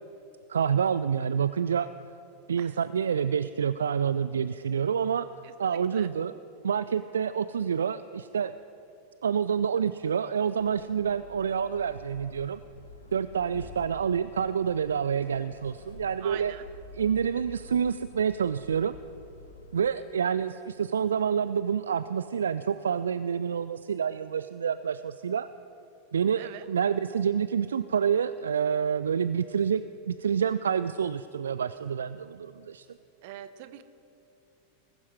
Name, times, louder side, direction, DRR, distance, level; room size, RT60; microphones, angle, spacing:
voice 1, 0.5-1.9 2.5-5.3 5.6-6.3 6.6-8.5 9.2-12.6 13.1-16.5 16.9-18.9 19.7-25.5 26.1-32.9, right 7 dB, 70° right, 13 dB, 0.3 m, -28 dB
voice 2, 5.4-6.1 16.2-16.6 26.4-26.7 33.2-33.8, right 13 dB, 50° right, 12 dB, 0.8 m, -43 dB
sound 1, 10.5-20.0, left 2 dB, 75° left, 1.3 m, -48 dB
20.5 x 11.5 x 4.8 m, 2.8 s
figure-of-eight pair, 90°, 0 cm